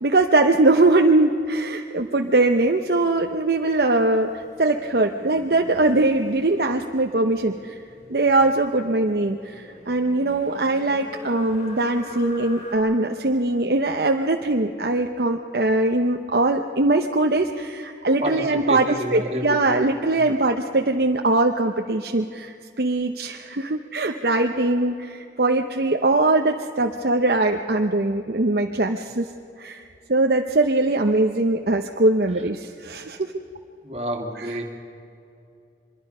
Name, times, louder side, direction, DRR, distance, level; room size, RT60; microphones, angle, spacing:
voice 1, 0.0-7.8 8.1-29.3 29.6-33.2 34.4-34.6, right 2 dB, 60° right, 4 dB, 0.8 m, -21 dB
sound 1, 2.3-12.8, left 1 dB, 40° left, 3.7 m, -43 dB
voice 2, 18.2-19.7 20.1-20.3 33.8-34.6, equal, 35° right, 1 dB, 2.4 m, -29 dB
25.0 x 22.0 x 5.5 m, 2.6 s
head